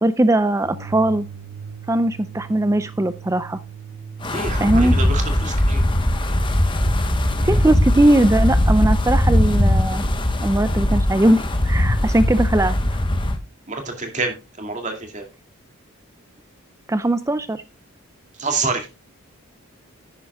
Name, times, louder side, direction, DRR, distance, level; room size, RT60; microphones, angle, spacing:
voice 1, 0.0-1.3 1.9-3.6 4.6-5.0 7.4-10.0 10.4-12.8 16.9-17.6, right 1 dB, 15° right, 13 dB, 0.4 m, -19 dB
sound 1, 0.6-6.2, right 6 dB, 60° right, 0.9 m, -38 dB
Wind, 4.2-13.4, left 1 dB, 20° left, 1.0 m, -20 dB
voice 2, 4.3-5.8 13.7-15.2 18.4-18.8, right 3 dB, 35° right, 4 dB, 2.3 m, -27 dB
10.5 x 10.5 x 2.2 m, 0.28 s
head